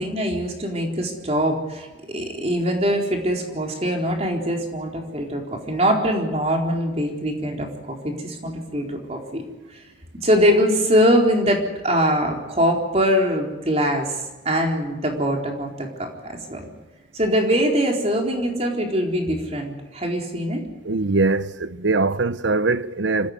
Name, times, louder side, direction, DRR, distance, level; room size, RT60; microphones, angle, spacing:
voice 1, 0.0-9.4 10.2-14.1 14.4-16.1 16.5-16.6 17.1-20.6, equal, 35° right, 4.2 m, -22 dB
voice 2, 20.8-23.3, right 3 dB, 85° right, 0.9 m, -22 dB
26.0 x 16.0 x 9.6 m
head